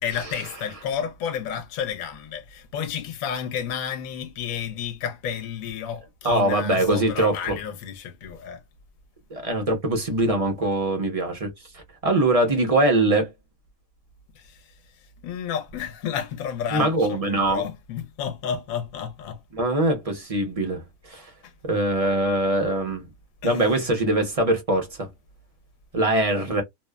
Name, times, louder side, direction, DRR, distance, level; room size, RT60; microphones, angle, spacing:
voice 1, 0.0-8.6 14.3-14.6 15.2-19.4 21.4-21.5 23.4-23.9, left 8 dB, 75° left, 1.1 m, -31 dB
voice 2, 6.2-7.6 9.3-13.3 16.7-17.6 19.5-21.3 21.6-23.1 23.4-25.1 25.9-26.6, right 2 dB, 35° right, 0.6 m, -23 dB
2.9 x 2.0 x 2.2 m
omnidirectional pair, 1.5 m